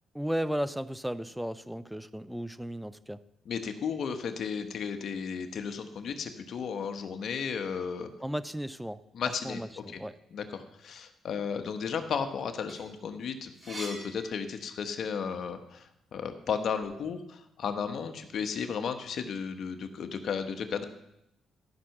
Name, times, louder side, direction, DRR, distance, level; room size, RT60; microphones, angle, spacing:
voice 1, 0.1-3.2 8.2-10.2, equal, 5° right, 15 dB, 0.5 m, -35 dB
voice 2, 3.5-8.1 9.1-9.6 9.9-10.0 10.3-20.8, left 6 dB, 60° left, 7 dB, 1.2 m, -34 dB
sound 1, 12.7-15.1 15.5-16.9, right 1 dB, 30° right, 3.9 m, -46 dB
13.5 x 5.9 x 6.6 m, 0.84 s
cardioid pair, 90°, 0 cm